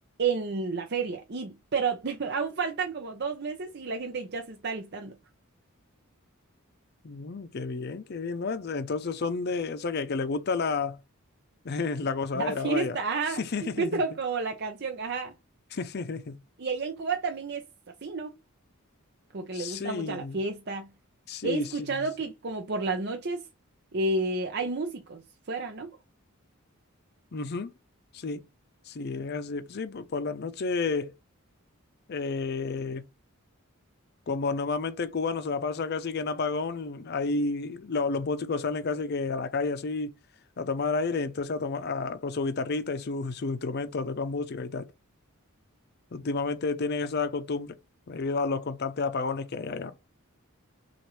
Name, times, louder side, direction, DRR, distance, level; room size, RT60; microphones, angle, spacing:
voice 1, 0.2-5.2 12.4-13.4 13.8-15.3 16.6-17.6 18.0-18.3 19.3-20.9 21.4-23.4 23.9-25.2 25.5-25.9, right 4 dB, 50° right, 0.6 m, -31 dB
voice 2, 7.0-11.0 11.6-13.0 13.3-14.0 15.7-16.4 19.5-20.4 21.3-22.1 27.3-27.7 28.1-28.5 28.9-31.1 32.1-33.1 34.3-40.2 40.6-44.9 46.1-47.8 48.1-49.9, left 4 dB, 50° left, 0.5 m, -31 dB
6.2 x 2.5 x 3.1 m
head